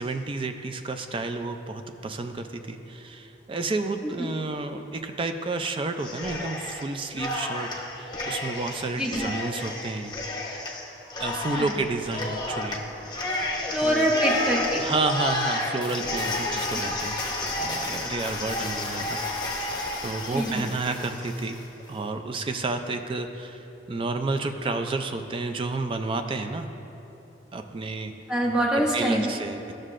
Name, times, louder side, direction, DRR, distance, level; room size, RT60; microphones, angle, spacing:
voice 1, 0.0-7.7 7.9-10.2 11.2-12.8 13.8-14.4 14.8-17.2 17.6-19.2 20.0-21.6 21.9-23.6 23.9-26.7 27.5-28.1 28.9-29.7, right 3 dB, 30° right, 6 dB, 0.4 m, -30 dB
Cheering, 6.0-6.8 7.1-21.6, left 2 dB, 25° left, 0.8 m, -31 dB
voice 2, 9.0-9.3 11.6-11.7 13.7-14.9 16.7-16.8 20.3-20.7 28.3-29.3, equal, 5° right, -4 dB, 0.9 m, -25 dB
12.5 x 6.4 x 2.5 m, 3.0 s
head